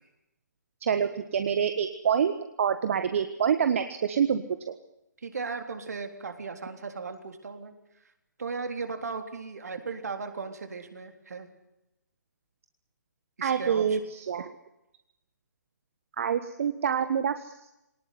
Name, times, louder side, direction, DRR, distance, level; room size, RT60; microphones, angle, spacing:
voice 1, 0.8-2.3 2.6-4.7 13.4-14.5 16.2-17.5, right 7 dB, 45° right, 9 dB, 1.4 m, -26 dB
voice 2, 5.2-7.7 8.4-11.5 13.4-14.0, right 4 dB, 60° right, 6 dB, 3.7 m, -36 dB
22.5 x 19.5 x 9.7 m, 0.90 s
figure-of-eight pair, 135°, 10 cm